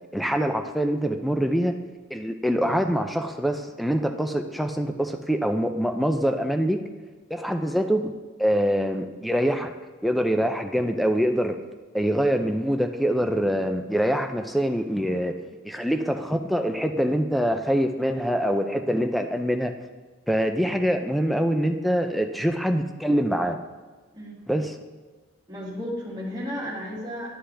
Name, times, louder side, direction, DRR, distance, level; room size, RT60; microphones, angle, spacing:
voice 1, 0.1-1.8 2.1-6.8 7.3-8.1 8.4-9.7 10.0-11.6 11.9-15.3 15.6-19.7 20.3-23.6 24.5-24.8, equal, ahead, 6 dB, 0.4 m, -24 dB
voice 2, 25.5-27.3, equal, 20° right, -5 dB, 2.1 m, -33 dB
11.5 x 5.5 x 3.4 m, 1.3 s
head